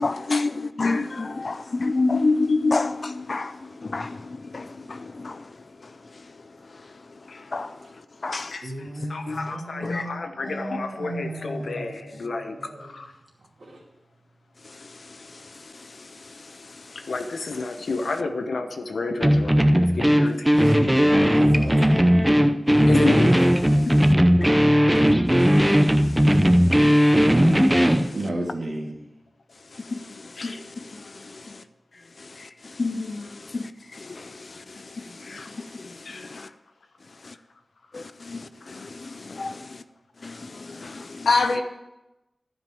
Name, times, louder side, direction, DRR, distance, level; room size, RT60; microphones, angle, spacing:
voice 1, 0.0-5.5 7.5-7.8 8.2-8.5 9.0-9.5 9.8-10.1 14.7-17.0 23.8-24.1 25.4-28.1 29.7-31.6 32.2-36.5 37.2-37.3 37.9-39.8 40.2-41.3, left 3 dB, 50° left, 0.6 m, -31 dB
voice 2, 7.3-7.6 8.5-13.1 17.1-20.5 22.8-23.3 27.0-27.1 30.4-30.6 32.4-32.5 35.2-35.5 35.8-36.5 37.2-37.3 38.6-38.9 40.4-40.5 40.7-41.6, left 3 dB, 85° left, 1.1 m, -29 dB
voice 3, 8.6-12.9 13.6-13.8 20.6-22.6 28.1-29.0, right 1 dB, 70° right, 2.5 m, -34 dB
sound 1, 19.2-28.1, equal, 10° right, 0.6 m, -17 dB
12.0 x 5.3 x 7.7 m
wide cardioid pair, 100°, 0 cm